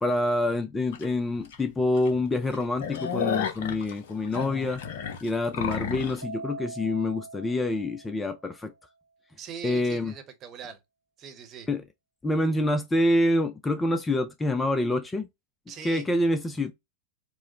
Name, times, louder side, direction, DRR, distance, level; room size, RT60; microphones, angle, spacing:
voice 1, 0.0-4.8 5.2-8.7 9.6-10.1 11.7-11.8 12.2-15.3 15.8-16.7, left 1 dB, 10° left, 0.4 m, -26 dB
sound 1, 0.9-1.1 1.5-1.6 1.9-2.1 2.4-6.2, left 7 dB, 55° left, 0.7 m, -32 dB
Keyboard (musical), 6.2-8.7, right 3 dB, 80° right, 0.4 m, -42 dB
voice 2, 9.4-10.8 11.2-11.7 15.7-16.1, right 7 dB, 30° right, 1.0 m, -41 dB
4.6 x 2.1 x 2.8 m
figure-of-eight pair, 90°, 0 cm